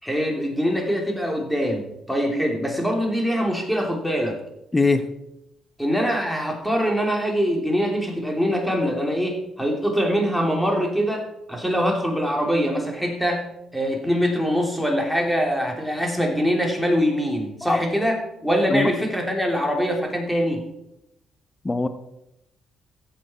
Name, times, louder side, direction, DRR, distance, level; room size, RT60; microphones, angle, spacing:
voice 1, 0.0-4.4 5.8-13.5 13.7-20.7, equal, ahead, 1 dB, 3.2 m, -23 dB
voice 2, 4.7-5.1 17.7-17.8 18.7-18.9 21.6-21.9, left 3 dB, 20° left, 10 dB, 0.9 m, -20 dB
14.0 x 7.8 x 4.5 m, 0.85 s
cardioid pair, 80°, 0 cm